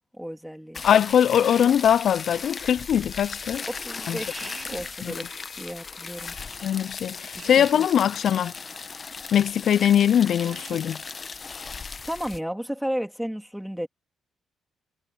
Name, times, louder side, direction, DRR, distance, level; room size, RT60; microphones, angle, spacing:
voice 1, 0.0-0.8 3.6-6.4 7.3-7.7 12.0-13.9, equal, ahead, 2.8 m, -33 dB
sound 1, 0.7-12.4, left 5 dB, 35° left, 0.9 m, -37 dB
voice 2, 0.8-3.6 4.1-4.2 5.0-5.1 6.6-8.5 9.3-11.0, left 9 dB, 65° left, 0.3 m, -21 dB
Alarm, 1.2-1.6 2.1-2.6 3.1-3.6 4.1-4.6 5.2-5.7 6.2-6.5, left 11 dB, 80° left, 4.7 m, -50 dB
Drill, 1.3-1.9 4.3-5.0 7.4-8.0 10.4-11.0, right 9 dB, 75° right, 1.8 m, -45 dB
cardioid pair, 105°, 0 cm